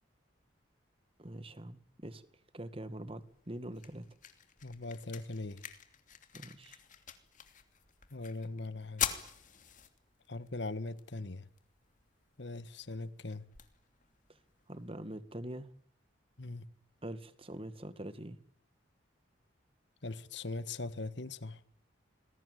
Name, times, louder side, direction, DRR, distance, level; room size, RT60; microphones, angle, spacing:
voice 1, 1.2-2.2 2.5-4.1 6.3-6.8 14.3-14.4 14.7-15.7 17.0-18.4, right 1 dB, 30° right, 1.9 m, -44 dB
sound 1, 3.2-15.2, left 9 dB, 40° left, 2.9 m, -45 dB
voice 2, 4.6-5.6 8.1-9.1 10.3-11.5 12.4-13.5 16.4-16.7 20.0-21.6, left 2 dB, 65° left, 1.6 m, -40 dB
27.5 x 21.0 x 9.3 m
head